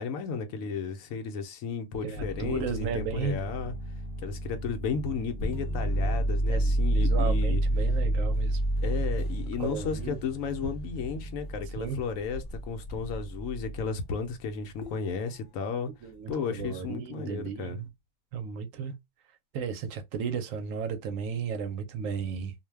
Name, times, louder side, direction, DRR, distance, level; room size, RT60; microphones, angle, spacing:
voice 1, 0.0-3.7 4.2-7.6 8.8-15.9 16.3-17.8, left 5 dB, 75° left, 0.9 m, -34 dB
voice 2, 2.0-3.5 6.5-8.6 9.6-10.2 11.8-12.0 16.0-17.9 18.3-18.9 19.5-22.5, right 6 dB, 70° right, 0.9 m, -34 dB
sound 1, 2.2-13.9 14.8-15.2, right 1 dB, 55° left, 0.6 m, -30 dB
2.5 x 2.1 x 3.2 m
omnidirectional pair, 1.5 m